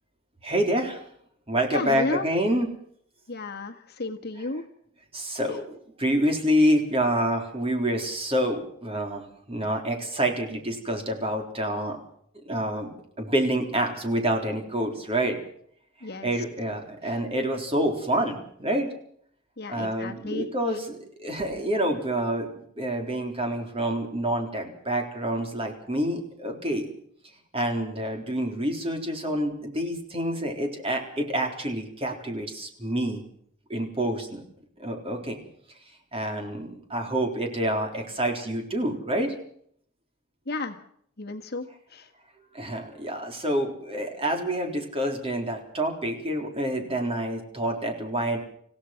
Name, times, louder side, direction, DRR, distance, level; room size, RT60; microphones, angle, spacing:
voice 1, 0.4-1.0 1.5-2.7 5.1-12.0 12.5-12.9 13.2-15.4 16.2-18.9 19.7-22.5 22.8-26.9 27.5-33.2 33.7-34.4 34.8-35.4 36.1-39.3 42.5-48.4, right 1 dB, 30° right, 3 dB, 3.8 m, -27 dB
voice 2, 1.7-2.3 3.3-4.6 16.0-16.3 17.1-17.2 19.6-20.8 40.5-40.8 41.2-41.7 41.9-42.1, left 3 dB, 50° left, 4 dB, 1.7 m, -33 dB
27.0 x 16.5 x 5.9 m, 0.66 s
head